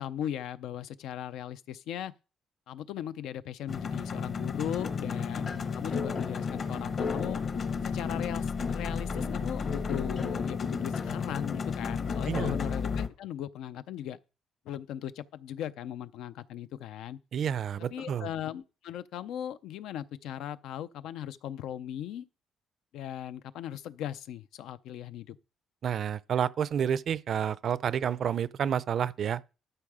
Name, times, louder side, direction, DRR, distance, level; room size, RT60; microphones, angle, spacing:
voice 1, 0.0-2.1 2.7-7.4 7.8-14.2 14.7-17.2 17.9-22.2 22.9-25.4, left 10 dB, 90° left, 0.5 m, -38 dB
sound 1, 3.7-13.1, left 5 dB, 40° left, 1.0 m, -32 dB
voice 2, 17.3-18.3 25.8-29.4, right 8 dB, 50° right, 0.4 m, -29 dB
12.5 x 5.6 x 4.9 m
cardioid pair, 135°, 0 cm